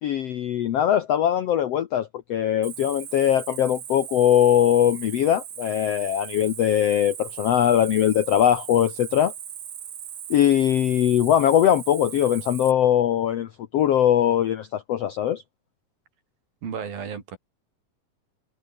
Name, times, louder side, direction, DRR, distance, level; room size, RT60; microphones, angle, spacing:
voice 1, 0.0-9.3 10.3-15.4, left 10 dB, 75° left, 1.5 m, -21 dB
Cricket, 2.6-12.7, right 9 dB, 50° right, 1.7 m, -38 dB
voice 2, 16.6-17.4, right 7 dB, 75° right, 5.4 m, -33 dB
omnidirectional pair, 4.2 m